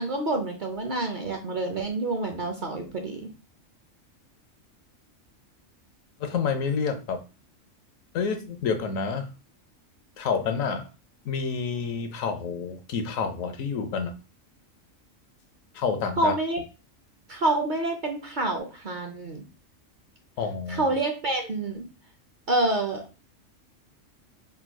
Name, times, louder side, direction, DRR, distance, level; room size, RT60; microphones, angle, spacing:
voice 1, 0.0-3.3 16.2-16.6 17.3-19.4 20.7-21.9 22.5-23.0, right 2 dB, 50° right, 0.6 m, -27 dB
voice 2, 6.2-7.2 8.1-9.3 10.2-10.9 11.2-14.1 15.7-16.3 20.4-20.9, left 5 dB, 80° left, 1.1 m, -28 dB
3.5 x 2.3 x 4.4 m
omnidirectional pair, 1.4 m